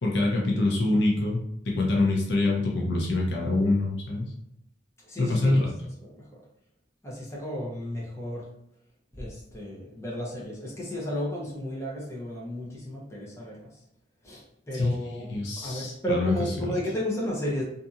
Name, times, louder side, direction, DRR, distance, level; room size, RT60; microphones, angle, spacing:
voice 1, 0.0-4.3 5.2-5.7 14.7-16.7, left 2 dB, 65° left, -2 dB, 0.6 m, -25 dB
voice 2, 5.1-5.5 6.1-6.3 7.0-8.4 9.1-13.7 14.2-17.6, equal, 15° left, -5 dB, 0.7 m, -33 dB
2.7 x 2.6 x 2.4 m, 0.78 s
head